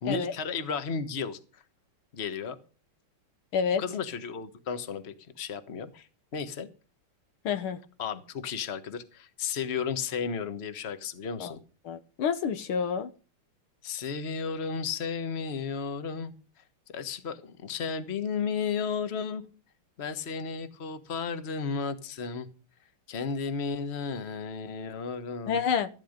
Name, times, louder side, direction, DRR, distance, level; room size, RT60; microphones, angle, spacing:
voice 1, 0.0-1.6 2.1-2.6 3.8-6.1 6.3-6.7 8.0-11.6 13.8-16.3 16.9-19.4 20.0-22.5 23.1-25.6, left 5 dB, 35° left, 1.4 m, -33 dB
voice 2, 3.5-3.8 7.5-7.8 11.4-11.5 11.9-13.1 25.5-25.9, left 7 dB, 70° left, 1.8 m, -28 dB
14.5 x 12.0 x 5.2 m
omnidirectional pair, 2.4 m